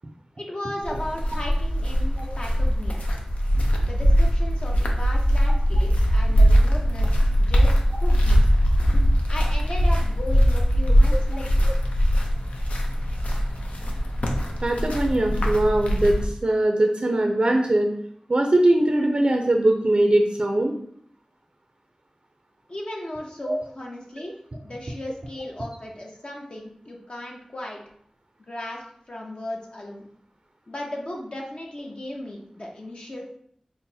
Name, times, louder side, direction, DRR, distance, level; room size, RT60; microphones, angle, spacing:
voice 1, 0.3-3.0 3.8-8.4 9.3-11.5 22.7-24.3 24.6-27.8 28.4-30.1 30.7-33.3, left 1 dB, 50° left, -1 dB, 0.7 m, -36 dB
sound 1, 0.8-16.3, equal, 85° left, 0.5 m, -21 dB
voice 2, 14.6-17.9 18.3-20.7 23.5-23.6, right 1 dB, 50° right, 2 dB, 0.4 m, -21 dB
5.5 x 2.0 x 2.6 m, 0.64 s
wide cardioid pair, 45°, 2 cm